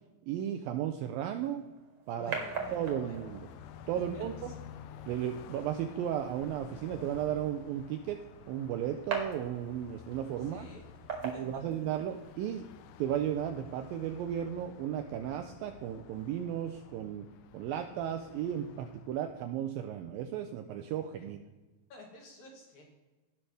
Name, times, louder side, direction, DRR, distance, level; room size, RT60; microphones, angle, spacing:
voice 1, 0.3-1.6 2.1-2.4 2.7-3.4 3.9-4.5 5.1-10.7 11.2-12.7 13.0-17.3 17.5-21.4, right 10 dB, 80° right, 5 dB, 2.1 m, -35 dB
sound 1, 1.3-12.3, right 5 dB, 50° right, 2.0 m, -44 dB
voice 2, 2.1-3.2 4.0-4.5 10.4-10.8 11.1-11.6 21.2-21.3 21.9-22.8, left 1 dB, 60° left, 0 dB, 2.3 m, -51 dB
Car passing by, 2.3-19.5, left 9 dB, 85° left, 2.6 m, -52 dB
17.0 x 5.8 x 3.3 m, 1.2 s
omnidirectional pair, 4.6 m